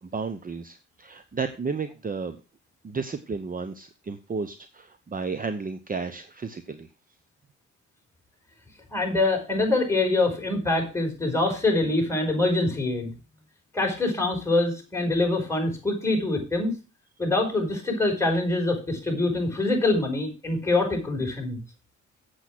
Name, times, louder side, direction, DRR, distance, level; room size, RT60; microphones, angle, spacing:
voice 1, 0.0-2.4 2.8-6.9, right 4 dB, 30° right, 10 dB, 0.9 m, -33 dB
voice 2, 8.9-13.1 13.7-16.7 17.2-21.6, left 2 dB, 10° left, 1 dB, 5.0 m, -24 dB
8.2 x 8.1 x 6.1 m, 0.32 s
cardioid pair, 90°, 30 cm